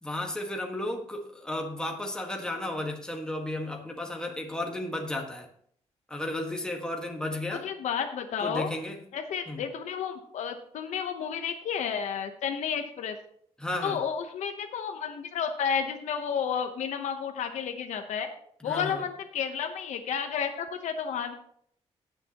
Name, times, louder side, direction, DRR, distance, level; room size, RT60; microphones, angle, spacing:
voice 1, 0.0-5.5 6.1-7.7 8.4-9.0 9.5-9.6 13.6-14.0 18.6-19.0, left 1 dB, 5° left, 1 dB, 1.6 m, -33 dB
voice 2, 7.6-8.7 9.1-13.2 13.8-18.3 18.6-21.3, left 7 dB, 85° left, 6 dB, 1.0 m, -31 dB
18.5 x 6.9 x 3.0 m, 0.64 s
cardioid pair, 95°, 12 cm